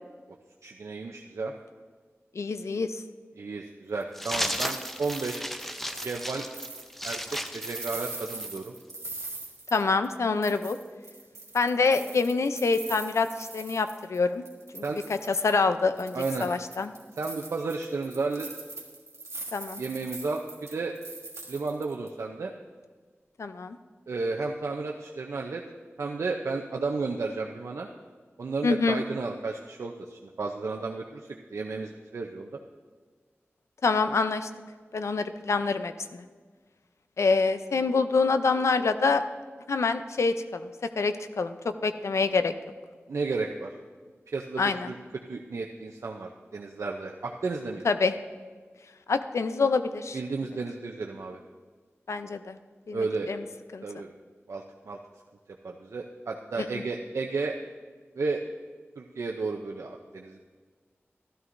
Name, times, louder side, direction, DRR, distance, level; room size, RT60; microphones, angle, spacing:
voice 1, 0.6-1.5 3.4-5.4 6.0-6.5 7.0-8.7 14.8-15.0 16.1-16.5 17.2-18.5 19.8-20.9 21.5-22.5 24.1-25.6 26.0-27.9 28.4-32.6 43.1-43.7 44.3-45.0 45.3-47.9 50.1-51.4 52.9-53.3 53.8-54.1 54.5-55.0 55.6-57.5 58.2-58.4 59.0-60.4, right 3 dB, 90° right, 1 dB, 0.5 m, -33 dB
voice 2, 2.4-3.0 9.7-10.8 11.5-14.4 14.7-14.8 15.1-16.9 19.5-19.8 23.4-23.8 28.6-29.0 33.8-34.5 34.9-36.2 37.2-39.2 39.7-40.7 41.0-42.5 44.6-44.9 47.8-48.1 49.1-50.2 52.1-52.6 52.9-53.4 53.7-54.0 56.6-56.8, left 4 dB, 90° left, 10 dB, 0.5 m, -26 dB
sound 1, 4.0-10.2 10.4-14.2 14.5-15.6 16.0-22.1, right 3 dB, 70° right, 1.5 m, -42 dB
zombie eating lukewarm guts, 4.2-8.6, equal, 5° left, 0.6 m, -34 dB
12.5 x 12.5 x 2.6 m, 1.5 s
wide cardioid pair, 60°, 5 cm